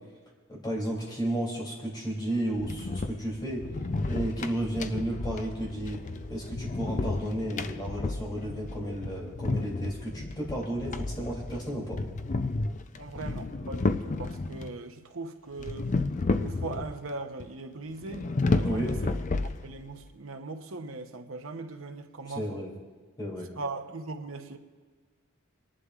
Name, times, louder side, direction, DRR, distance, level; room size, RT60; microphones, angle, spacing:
voice 1, 0.5-3.7 4.1-6.0 6.3-12.0 18.6-18.9 22.3-22.7 23.2-23.5, right 1 dB, 20° left, 3.0 m, -33 dB
sound 1, 2.6-14.7 15.6-17.1 17.4-17.5 18.0-20.0, left 3 dB, 35° left, 0.5 m, -32 dB
voice 2, 13.0-15.9 16.4-19.1 19.6-22.6 23.6-24.6, right 3 dB, 75° right, 0.9 m, -39 dB
28.5 x 11.0 x 2.5 m
head